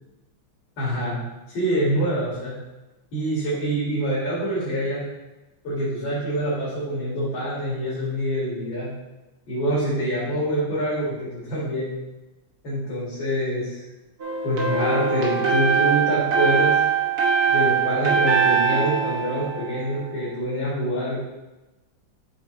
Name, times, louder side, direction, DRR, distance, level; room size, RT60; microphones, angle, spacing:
voice 1, 0.8-1.2 1.5-2.5 3.1-5.0 5.6-8.9 9.5-11.9 12.6-13.8 14.4-16.8 17.5-21.2, right 1 dB, 75° left, -9 dB, 2.6 m, -25 dB
sound 1, 14.2-20.2, right 6 dB, 55° right, 1.8 m, -22 dB
8.4 x 3.8 x 3.7 m, 1.1 s
omnidirectional pair, 2.1 m